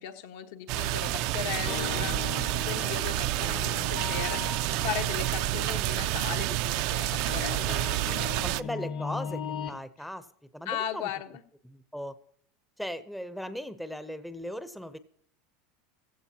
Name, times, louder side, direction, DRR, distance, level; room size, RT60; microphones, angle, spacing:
voice 1, 0.0-8.4 10.7-11.4, left 10 dB, 75° left, 6 dB, 1.2 m, -37 dB
sound 1, 0.7-8.6, right 16 dB, 55° right, 0.4 m, -29 dB
sound 2, 1.4-9.8, left 8 dB, 45° left, 0.9 m, -39 dB
voice 2, 8.4-10.3 10.5-11.1 11.6-12.2 12.8-15.0, equal, ahead, 11 dB, 0.6 m, -38 dB
15.5 x 15.5 x 2.8 m, 0.64 s
supercardioid pair, 150°, 0 cm